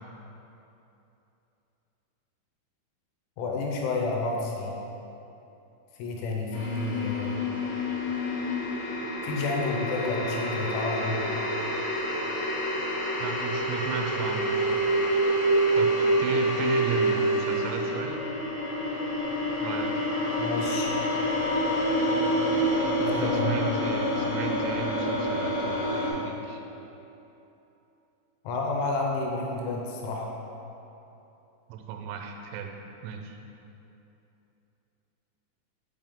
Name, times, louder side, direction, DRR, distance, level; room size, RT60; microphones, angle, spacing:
voice 1, 3.4-4.8 6.0-7.4 9.2-11.3 20.4-20.9 23.1-23.5 28.4-30.3, left 3 dB, 80° left, -1 dB, 3.1 m, -30 dB
sound 1, 6.5-26.1, equal, 60° left, 2.5 m, -27 dB
voice 2, 13.2-14.9 15.7-15.9 16.2-18.2 19.6-19.9 23.0-26.6 31.7-32.7 33.0-33.4, right 7 dB, 85° right, 3 dB, 2.8 m, -35 dB
7.4 x 5.4 x 3.6 m, 2.9 s
omnidirectional pair, 5.6 m